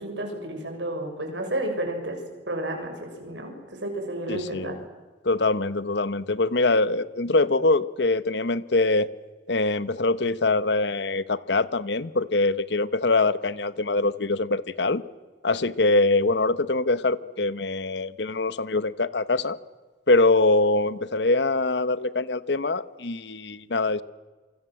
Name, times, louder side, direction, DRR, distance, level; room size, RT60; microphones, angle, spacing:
voice 1, 0.0-2.2 2.5-3.6 3.8-4.8, right 1 dB, 90° right, 4 dB, 7.0 m, -31 dB
voice 2, 4.3-4.8 5.2-9.1 9.5-15.0 15.4-19.6 20.1-24.0, left 2 dB, 70° left, 15 dB, 1.1 m, -23 dB
28.0 x 25.0 x 7.7 m, 1.3 s
head